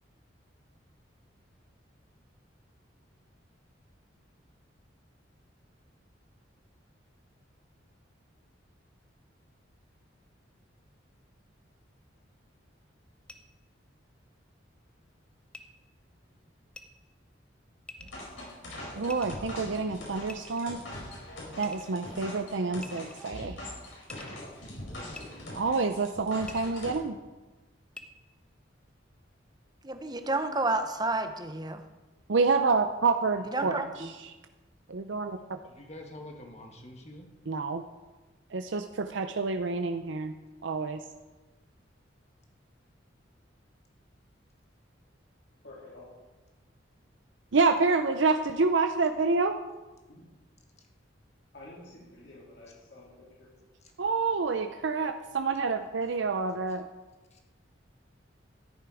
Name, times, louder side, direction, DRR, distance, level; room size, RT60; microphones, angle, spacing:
sound 1, 13.3-13.4 15.5-15.6 16.7-16.8 17.9-18.2 19.1-19.5 20.3-20.8 21.6-22.0 22.8-23.3 24.1-24.4 25.1-25.2 26.4-26.6 27.9-28.0, left 2 dB, 5° left, 0.7 m, -46 dB
sound 2, 18.0-27.0, left 1 dB, 80° left, 4.9 m, -42 dB
voice 1, 18.9-20.8 21.5-23.6 25.6-27.2 32.3-33.8 34.9-35.6 37.5-37.8 38.5-40.3 40.6-41.0 47.5-49.6 54.0-56.9, right 4 dB, 70° right, 7 dB, 0.6 m, -28 dB
voice 2, 24.6-25.5 33.6-33.9 35.7-37.3 57.3-57.4, left 1 dB, 35° left, 3 dB, 1.7 m, -47 dB
voice 3, 29.8-31.8 33.5-34.1, right 2 dB, 20° right, 8 dB, 0.9 m, -30 dB
voice 4, 45.6-46.1 50.1-50.2 51.5-53.5, left 2 dB, 60° left, -7 dB, 3.4 m, -50 dB
13.5 x 10.5 x 5.0 m, 1.2 s
head